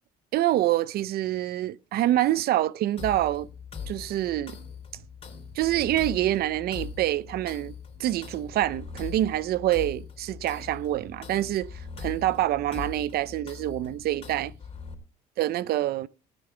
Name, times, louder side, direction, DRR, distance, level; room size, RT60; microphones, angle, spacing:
voice 1, 0.3-3.5 3.9-4.6 5.6-7.7 8.0-11.7 12.0-14.5 15.4-16.1, right 14 dB, 70° right, 0.7 m, -26 dB
sound 1, 3.0-14.9, left 6 dB, 35° left, 3.5 m, -41 dB
19.5 x 9.3 x 3.4 m
cardioid pair, 110°, 17 cm